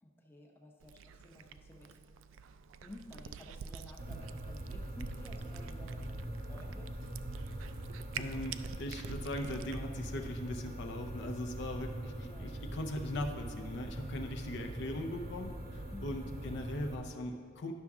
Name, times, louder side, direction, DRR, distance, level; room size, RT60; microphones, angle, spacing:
voice 1, 0.0-2.0 2.8-7.0 12.2-12.5 15.9-16.3, left 1 dB, 10° left, 0 dB, 0.7 m, -53 dB
Cat, 0.8-9.8, right 6 dB, 70° right, 0.3 m, -47 dB
sound 1, 4.0-16.9, right 1 dB, 50° right, 0.8 m, -42 dB
voice 2, 8.1-17.7, left 1 dB, 60° left, 4 dB, 0.5 m, -40 dB
11.0 x 5.9 x 3.5 m, 2.4 s
head